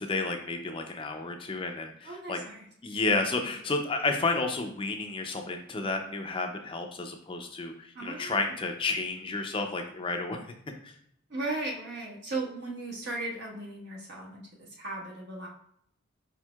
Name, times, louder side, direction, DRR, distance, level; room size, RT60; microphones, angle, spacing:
voice 1, 0.0-2.4 2.8-10.4 10.8-10.9, left 3 dB, 25° left, 4 dB, 0.4 m, -31 dB
voice 2, 2.0-2.6 7.9-8.4 11.3-15.5, right 2 dB, 55° right, -3 dB, 1.3 m, -36 dB
5.0 x 4.4 x 2.3 m, 0.68 s
head